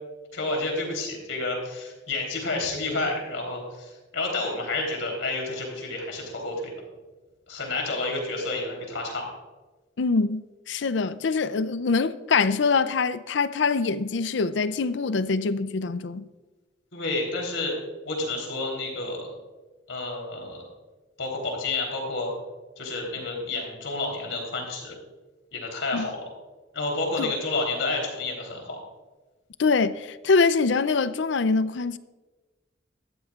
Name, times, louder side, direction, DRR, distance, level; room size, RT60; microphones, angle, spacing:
voice 1, 0.3-6.7 7.5-9.2 16.9-17.7 18.0-19.2 19.9-20.6 21.2-22.3 22.8-24.9 25.5-26.3 26.7-28.8, left 2 dB, 85° left, 3.6 m, -30 dB
voice 2, 10.0-16.2 25.9-26.1 27.2-27.3 29.6-32.0, left 4 dB, 70° left, 0.5 m, -24 dB
14.0 x 12.5 x 2.4 m
head